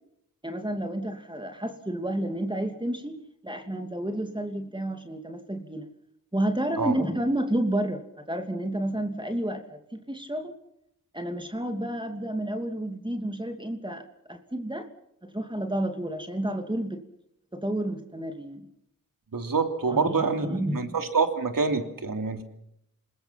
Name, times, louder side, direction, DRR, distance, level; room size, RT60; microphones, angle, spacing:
voice 1, 0.4-3.2 3.4-5.9 6.3-10.5 11.1-14.9 15.2-17.0 17.5-18.7 19.9-21.0, right 1 dB, 15° right, 5 dB, 2.7 m, -30 dB
voice 2, 19.3-22.4, right 4 dB, 75° right, 6 dB, 3.2 m, -26 dB
28.0 x 20.5 x 5.9 m, 0.79 s
cardioid pair, 50°, 34 cm